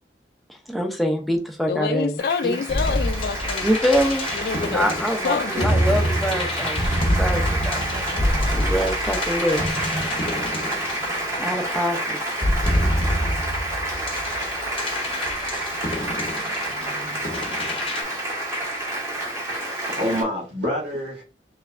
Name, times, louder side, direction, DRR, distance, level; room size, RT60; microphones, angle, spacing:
voice 1, 0.7-2.1 2.5-2.6 3.6-4.3 4.7-8.0 8.4-9.6 11.4-12.2, equal, ahead, 0.6 m, -25 dB
voice 2, 1.7-3.7 4.3-4.8 5.2-5.8, left 5 dB, 60° left, 0.3 m, -26 dB
Applause, 2.2-20.2, right 1 dB, 15° right, 1.4 m, -29 dB
sound 1, 2.7-11.7 12.3-18.0, equal, 30° left, 0.8 m, -26 dB
sound 2, 5.4-8.5, equal, 50° right, 1.1 m, -36 dB
voice 3, 19.5-21.2, equal, 75° right, 1.5 m, -27 dB
4.5 x 3.2 x 2.5 m
head